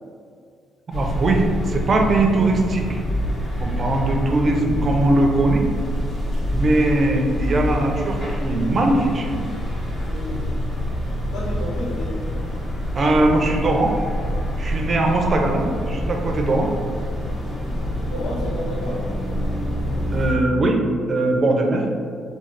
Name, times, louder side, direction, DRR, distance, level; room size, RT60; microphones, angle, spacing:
sound 1, 0.9-20.3, equal, 40° left, 1.2 m, -26 dB
voice 1, 0.9-3.0 3.6-5.6 6.5-9.4 13.0-13.9 14.6-16.7 20.1-20.8 21.1-21.9, right 2 dB, 40° right, 2 dB, 0.5 m, -20 dB
voice 2, 10.0-10.5 11.3-12.2 15.3-15.6 18.1-19.2, left 1 dB, 80° left, -3 dB, 0.8 m, -31 dB
3.6 x 2.4 x 3.2 m, 2.2 s
cardioid pair, 90°, 0 cm